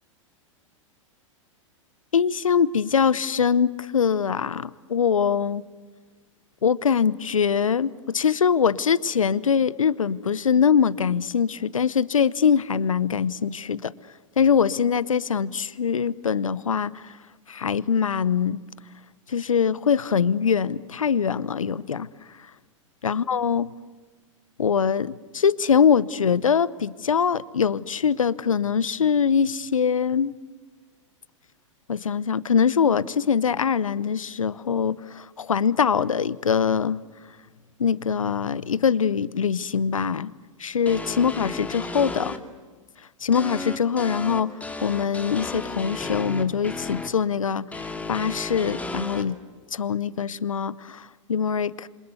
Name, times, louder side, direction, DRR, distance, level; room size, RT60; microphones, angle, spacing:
voice 1, 2.1-5.6 6.6-13.9 14.4-17.1 17.5-18.6 19.3-22.1 23.0-23.7 24.6-30.3 31.9-37.0 37.8-40.3 40.6-42.4 43.2-44.5 44.8-47.7 48.1-49.4 49.7-51.9, left 7 dB, 80° left, 0.9 m, -23 dB
sound 1, 40.9-42.4 43.3-47.1 47.7-49.2, left 3 dB, 10° left, 2.2 m, -33 dB
27.5 x 26.5 x 8.1 m
figure-of-eight pair, 100°, 17 cm